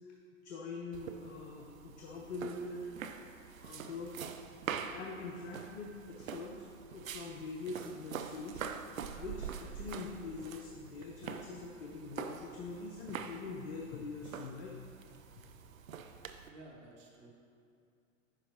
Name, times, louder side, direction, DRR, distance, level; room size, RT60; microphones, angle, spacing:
voice 1, 0.4-2.9 3.6-4.2 4.9-6.6 6.9-8.6 9.1-14.8, left 3 dB, 55° left, 0 dB, 0.7 m, -44 dB
sound 1, 0.9-16.5, right 7 dB, 75° right, 0.5 m, -45 dB
voice 2, 16.5-17.3, right 2 dB, 60° right, -2 dB, 1.4 m, -53 dB
9.7 x 5.4 x 2.8 m, 2.4 s
figure-of-eight pair, 95°, 41 cm